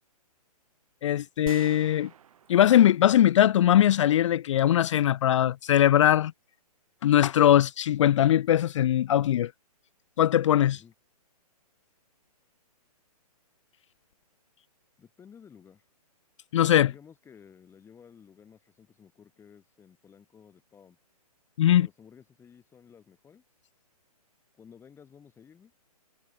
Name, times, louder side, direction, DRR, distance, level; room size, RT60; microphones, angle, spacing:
voice 1, 1.0-2.1 2.5-6.3 7.0-9.5 10.2-10.8 16.5-16.9 21.6-21.9, left 11 dB, 50° left, 0.4 m, -21 dB
sound 1, 1.5-3.4 3.7-3.8, right 9 dB, 60° right, 2.9 m, -46 dB
voice 2, 15.0-15.8 16.8-21.0 21.6-23.4 24.5-25.7, left 7 dB, 10° left, 6.6 m, -54 dB
hypercardioid pair, 140°, 20 cm